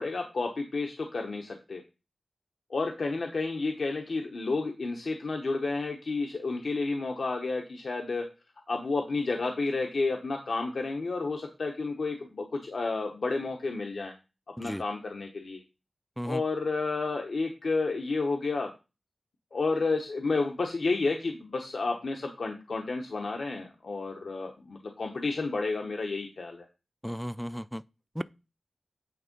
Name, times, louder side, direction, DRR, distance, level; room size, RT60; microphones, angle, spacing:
voice 1, 0.0-1.8 2.7-8.2 8.7-14.1 14.6-15.6 16.2-18.7 19.5-26.6, left 3 dB, 70° left, 0.9 m, -31 dB
voice 2, 27.0-27.8 28.2-28.3, equal, ahead, 0.3 m, -34 dB
8.8 x 3.7 x 5.2 m
wide cardioid pair, 90°, 0 cm